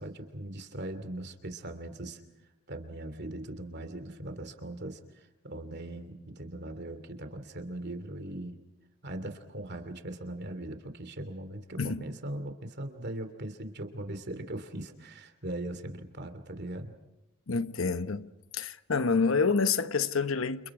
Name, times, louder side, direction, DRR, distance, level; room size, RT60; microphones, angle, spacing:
voice 1, 0.0-2.2 2.7-8.5 9.0-16.9, right 1 dB, 55° right, 2.8 m, -40 dB
voice 2, 17.5-20.7, left 4 dB, 80° left, 1.0 m, -28 dB
29.5 x 29.0 x 4.9 m
head